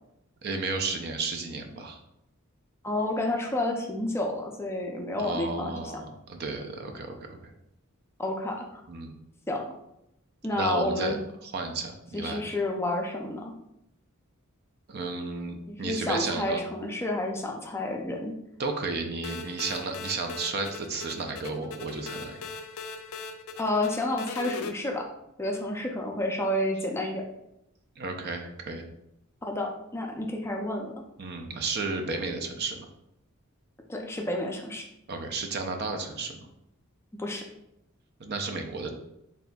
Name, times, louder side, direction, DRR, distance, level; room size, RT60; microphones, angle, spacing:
voice 1, 0.4-2.0 5.2-7.2 7.4-7.5 8.9-9.1 10.5-11.2 11.4-12.4 14.9-16.6 18.6-22.4 28.0-28.9 31.2-32.8 35.1-36.3 38.2-38.9, right 3 dB, 50° right, 4 dB, 0.5 m, -33 dB
voice 2, 2.8-5.9 8.2-8.8 9.5-9.7 10.4-11.2 12.1-13.4 15.7-18.4 23.6-25.1 25.4-27.2 29.4-30.9 33.9-34.8 37.1-37.5, left 1 dB, 10° left, 1 dB, 0.4 m, -30 dB
sound 1, 19.2-24.7, left 5 dB, 85° left, 0.4 m, -40 dB
4.1 x 3.5 x 2.3 m, 0.82 s
head